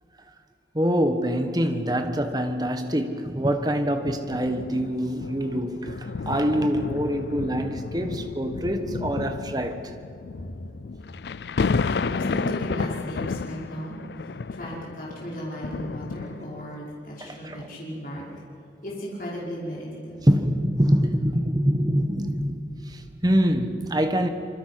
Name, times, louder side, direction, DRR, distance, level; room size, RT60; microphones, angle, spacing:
voice 1, 0.7-9.9 17.2-17.6 20.3-24.3, equal, 20° right, 1.5 m, -25 dB
sound 1, 4.0-16.8 17.5-17.6, left 4 dB, 70° left, 0.4 m, -32 dB
voice 2, 11.9-18.2 18.8-20.2, equal, 50° left, 5.4 m, -36 dB
25.5 x 24.0 x 6.1 m
head